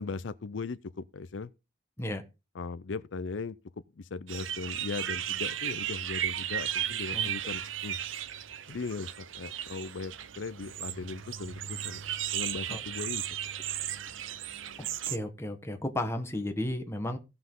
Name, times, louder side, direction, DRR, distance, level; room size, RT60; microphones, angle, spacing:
voice 1, 0.0-1.5 2.5-3.6 4.0-8.0 8.7-12.0 12.3-13.3, left 4 dB, 75° left, 0.5 m, -38 dB
sound 1, 4.3-15.2, right 10 dB, 85° right, 0.7 m, -35 dB
voice 2, 14.8-17.2, left 1 dB, 15° left, 1.4 m, -34 dB
16.5 x 5.8 x 3.8 m
head